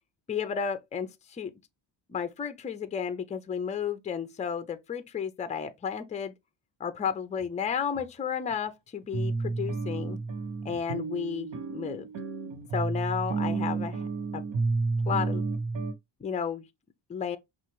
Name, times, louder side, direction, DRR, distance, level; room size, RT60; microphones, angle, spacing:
voice 1, 0.3-1.5 2.1-6.3 6.8-10.2 10.6-12.1 12.7-14.1 14.3-14.4 15.1-15.4 16.2-16.7 17.1-17.4, left 7 dB, 15° left, 0.4 m, -32 dB
sound 1, 7.4-7.5 7.9-8.0 8.5-8.6 9.1-15.9, right 3 dB, 75° right, 1.2 m, -31 dB
5.7 x 2.4 x 3.0 m
cardioid pair, 160°, 44 cm